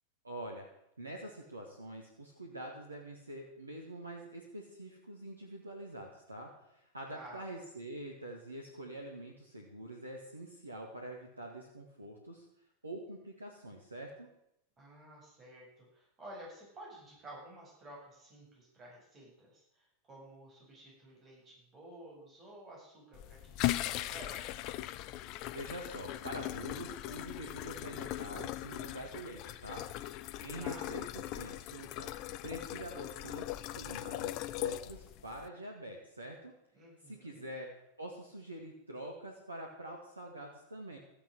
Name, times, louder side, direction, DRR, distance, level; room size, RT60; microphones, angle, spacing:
voice 1, 0.2-0.7 1.0-12.5 12.8-14.3 25.5-29.8 30.2-32.1 32.4-36.5 37.1-37.7 38.0-41.0, right 1 dB, 80° right, 1 dB, 2.1 m, -45 dB
voice 2, 7.1-7.4 14.8-24.7 30.6-30.9 36.7-37.5, right 1 dB, 25° right, -3 dB, 7.7 m, -52 dB
sound 1, 23.1-35.5, left 15 dB, 40° left, 0.6 m, -39 dB
14.0 x 9.4 x 7.9 m, 0.81 s
figure-of-eight pair, 90°, 0 cm